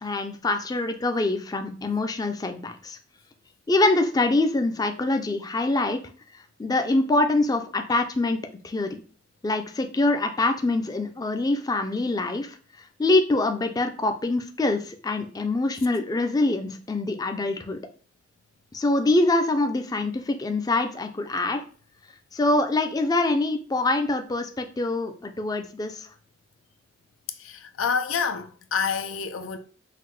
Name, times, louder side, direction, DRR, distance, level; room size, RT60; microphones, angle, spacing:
voice 1, 0.0-3.0 3.7-6.0 6.6-8.4 8.6-9.0 9.4-12.6 13.0-17.8 18.7-21.6 22.3-26.1, left 2 dB, 20° left, 0.4 m, -24 dB
voice 2, 27.4-29.6, left 6 dB, 90° left, 0.5 m, -28 dB
5.7 x 2.1 x 3.1 m
head